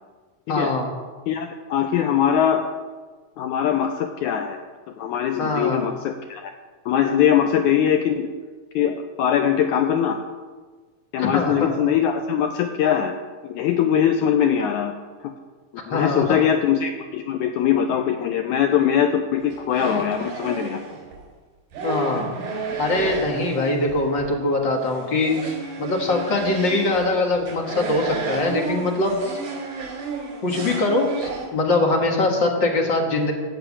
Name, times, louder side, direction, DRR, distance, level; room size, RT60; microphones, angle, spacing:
voice 1, 0.5-0.9 5.4-5.8 11.2-11.7 15.9-16.4 21.8-22.3 22.8-29.4 30.4-33.3, left 2 dB, 45° left, 1 dB, 1.8 m, -22 dB
voice 2, 1.3-2.7 3.4-4.6 5.0-6.5 6.8-8.3 8.7-10.2 11.1-13.2 13.4-14.9 15.2-15.3 15.9-20.8, left 9 dB, 80° left, 6 dB, 1.8 m, -21 dB
sound 1, 19.4-21.2 21.7-24.3 24.5-31.5, right 4 dB, 85° right, 5.7 m, -32 dB
14.5 x 6.0 x 8.5 m, 1.4 s
omnidirectional pair, 4.0 m